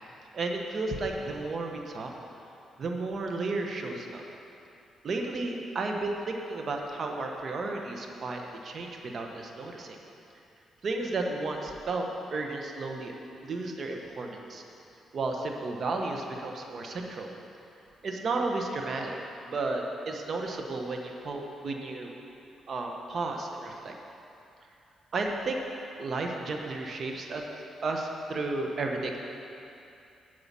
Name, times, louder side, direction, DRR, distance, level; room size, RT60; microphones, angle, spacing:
voice 1, 0.3-2.1 2.8-4.2 5.0-10.0 10.8-13.1 13.4-14.6 15.1-17.3 18.0-19.2 19.4-22.1 22.7-23.9 25.1-25.6 26.0-27.4 27.8-29.2, right 3 dB, 50° right, 2 dB, 0.9 m, -33 dB
8.2 x 4.8 x 7.3 m, 2.7 s
cardioid pair, 80°, 0 cm